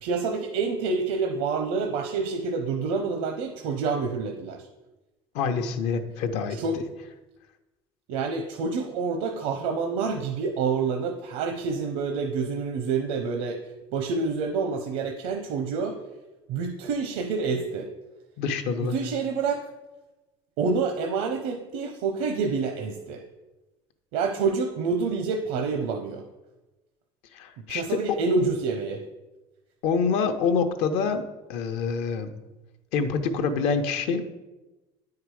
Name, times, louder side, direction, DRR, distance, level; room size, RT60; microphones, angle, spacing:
voice 1, 0.0-4.7 6.5-6.8 8.1-13.6 13.9-16.0 16.5-17.9 18.8-19.7 20.6-23.2 24.1-26.2 27.7-29.0, right 4 dB, 80° right, 5 dB, 0.7 m, -27 dB
voice 2, 5.3-6.8 18.4-19.0 27.3-28.0 29.8-31.2 31.5-32.3 32.9-34.2, left 5 dB, 65° left, 8 dB, 0.8 m, -26 dB
9.5 x 4.7 x 4.8 m, 1.1 s
cardioid pair, 145°, 12 cm